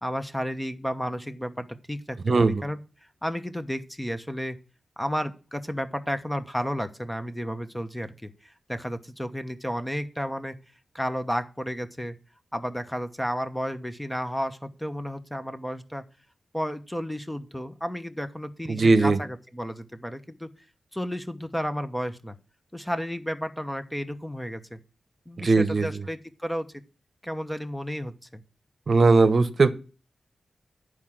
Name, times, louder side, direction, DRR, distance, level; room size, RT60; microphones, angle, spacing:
voice 1, 0.0-2.8 3.2-4.6 5.0-10.6 10.9-12.2 12.5-16.0 16.5-20.5 20.9-22.4 22.7-24.8 25.3-26.7 27.2-28.4, equal, 5° left, 9 dB, 1.0 m, -32 dB
voice 2, 2.2-2.6 18.7-19.2 25.4-26.0 28.9-29.7, right 3 dB, 55° right, 12 dB, 0.9 m, -19 dB
10.5 x 4.9 x 7.5 m, 0.33 s
wide cardioid pair, 80°, 0 cm